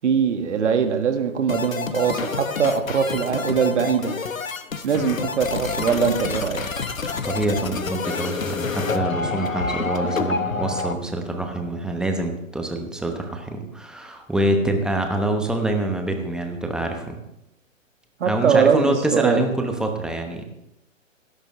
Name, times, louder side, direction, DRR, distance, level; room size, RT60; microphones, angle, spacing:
voice 1, 0.0-4.2 4.8-6.7 18.2-19.4, right 6 dB, 60° right, 6 dB, 1.8 m, -21 dB
sound 1, 1.5-10.9, left 4 dB, 85° left, 1.1 m, -28 dB
voice 2, 7.2-17.2 18.3-20.4, right 1 dB, ahead, 4 dB, 1.0 m, -25 dB
17.0 x 12.0 x 3.2 m, 0.86 s
figure-of-eight pair, 130°, 39 cm